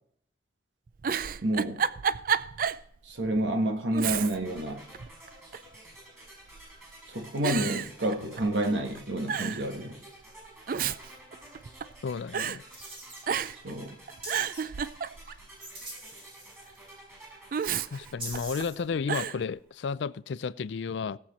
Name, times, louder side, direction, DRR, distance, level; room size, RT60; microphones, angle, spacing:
Giggle, 0.9-2.9 3.2-3.3 3.9-4.6 4.9-5.7 6.5-6.9 7.4-8.7 8.9-9.0 9.3-9.7 10.5-12.0 12.3-12.6 13.2-13.7 14.1-15.5 17.5-18.6 19.1-19.4, right 7 dB, 50° right, 0.4 m, -31 dB
voice 1, 1.4-1.8 3.1-4.8 7.1-10.0 13.6-13.9, right 1 dB, 75° right, 1.6 m, -29 dB
sound 1, 4.1-19.0, right 1 dB, 15° right, 4.8 m, -52 dB
voice 2, 12.0-12.6 17.9-21.2, left 5 dB, 70° left, 0.4 m, -32 dB
sound 2, 12.7-13.2 14.2-14.6 15.6-16.8 18.2-18.8, right 2 dB, 30° right, 3.5 m, -42 dB
17.0 x 7.5 x 4.3 m
head